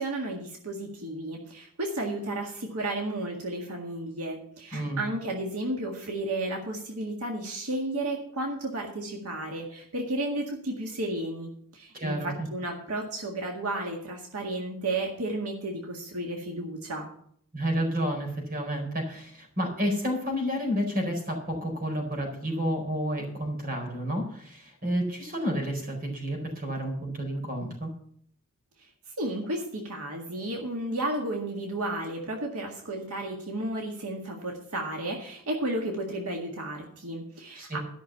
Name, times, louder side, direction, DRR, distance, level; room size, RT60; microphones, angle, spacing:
voice 1, 0.0-17.1 29.2-37.8, right 1 dB, 85° right, 1 dB, 1.9 m, -33 dB
voice 2, 4.7-5.0 11.9-12.5 17.5-27.9 37.5-37.8, equal, 40° right, 2 dB, 4.3 m, -30 dB
13.0 x 6.2 x 7.1 m, 0.64 s
head